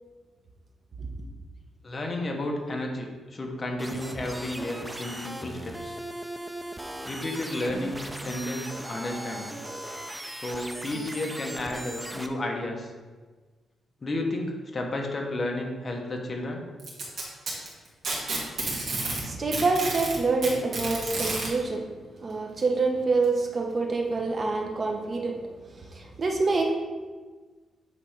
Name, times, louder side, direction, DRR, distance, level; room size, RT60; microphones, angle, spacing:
voice 1, 1.8-6.0 7.0-9.5 10.3-12.9 14.0-16.6, left 1 dB, 30° left, 1 dB, 1.1 m, -32 dB
sound 1, 3.8-12.3, right 1 dB, 10° right, 0.5 m, -38 dB
Packing tape duct tape, 16.8-19.2 19.5-21.5 22.6-22.7 23.2-23.3 24.2-24.3, right 3 dB, 55° right, 1.9 m, -30 dB
voice 2, 18.9-21.9 22.2-26.7, right 3 dB, 35° right, 2 dB, 1.0 m, -27 dB
8.4 x 3.4 x 5.0 m, 1.4 s
cardioid pair, 135°, 0 cm